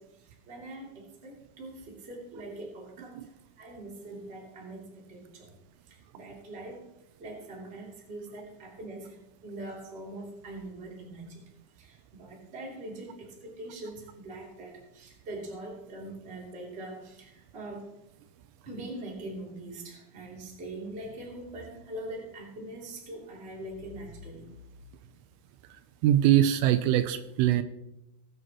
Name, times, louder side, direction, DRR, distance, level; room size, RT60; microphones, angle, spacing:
voice 1, 0.0-5.6 5.9-6.9 7.2-11.4 11.7-17.9 18.6-24.5, right 1 dB, 20° right, -2 dB, 1.8 m, -43 dB
voice 2, 26.0-27.6, right 12 dB, 85° right, 10 dB, 3.1 m, -22 dB
19.5 x 9.3 x 3.0 m, 0.90 s
omnidirectional pair, 5.9 m